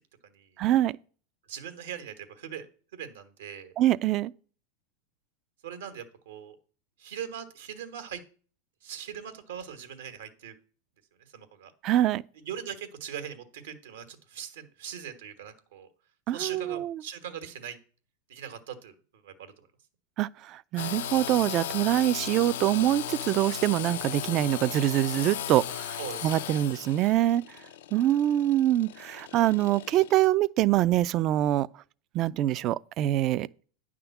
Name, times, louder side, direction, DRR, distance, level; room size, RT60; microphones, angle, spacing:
voice 1, 0.6-1.0 3.8-4.3 11.8-12.2 16.3-17.0 20.2-27.4 27.9-31.7 32.1-33.5, right 13 dB, 40° right, 0.3 m, -25 dB
voice 2, 1.5-2.7 2.9-3.7 5.6-6.6 7.0-8.2 8.8-10.5 11.3-11.7 12.4-15.9 16.3-17.8 18.3-18.9 19.2-19.7 26.0-26.7, right 8 dB, 80° right, 1.3 m, -40 dB
Engine / Sawing, 20.8-30.3, left 11 dB, 75° left, 0.4 m, -37 dB
9.4 x 3.6 x 7.0 m
supercardioid pair, 130°, 0 cm